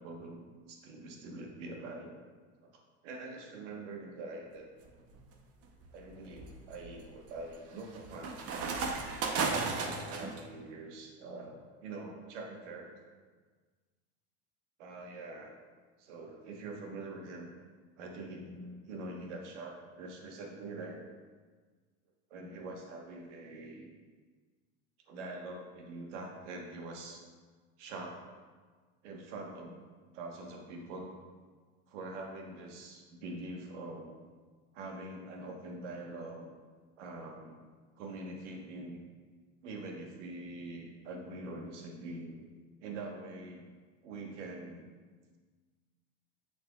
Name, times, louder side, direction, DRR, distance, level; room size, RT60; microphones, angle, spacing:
voice 1, 0.0-2.1 2.6-2.7 3.0-4.7 5.9-8.4 9.3-12.9 14.8-15.6 16.0-17.5 18.0-21.0 22.3-23.9 25.1-27.2 27.8-28.2 29.0-29.8 30.1-31.1 31.9-34.1 34.7-36.5 37.0-37.6 37.9-39.0 39.6-42.4 42.8-43.7 44.0-44.8, right 2 dB, 75° right, 1 dB, 1.3 m, -44 dB
sound 1, 4.9-5.2 5.8-10.4, right 4 dB, 40° right, 0.8 m, -35 dB
7.1 x 6.3 x 2.4 m, 1.5 s
hypercardioid pair, 100°, 35 cm